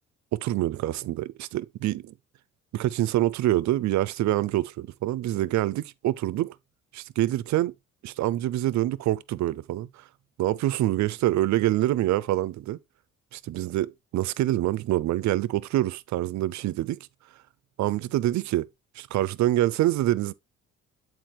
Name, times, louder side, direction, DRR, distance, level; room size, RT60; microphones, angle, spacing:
voice 1, 0.4-2.1 2.7-6.6 6.9-7.7 8.0-10.0 10.4-12.8 13.5-17.0 17.8-18.7 19.0-20.3, right 14 dB, 70° right, 0.5 m, -26 dB
7.6 x 4.6 x 3.0 m
cardioid pair, 90°, 30 cm